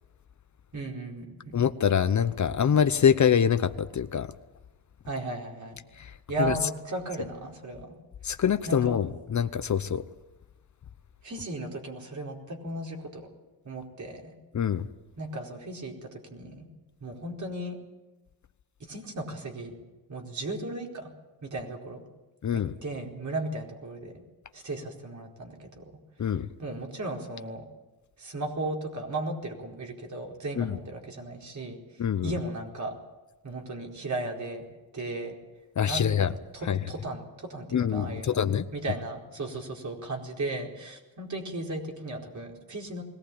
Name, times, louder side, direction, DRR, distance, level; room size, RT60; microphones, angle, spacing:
voice 1, 0.7-1.6 5.1-5.8 6.3-8.0 8.6-9.0 11.2-13.3 13.6-14.3 15.2-16.7 17.0-17.8 18.8-19.7 20.1-21.1 21.4-22.0 22.5-24.2 24.5-26.0 26.6-27.6 28.2-31.8 32.2-32.9 33.4-34.6 34.9-35.3 35.9-36.3 36.5-38.4 38.7-43.0, right 2 dB, 45° right, 4.6 m, -36 dB
voice 2, 1.5-4.3 6.0-6.1 6.4-6.5 8.2-10.0 14.5-14.9 22.4-22.7 26.2-26.5 30.6-30.8 32.0-32.3 35.8-36.3 36.7-36.8 37.7-38.7, left 8 dB, 45° left, 0.9 m, -25 dB
21.0 x 18.0 x 8.6 m
cardioid pair, 110°, 39 cm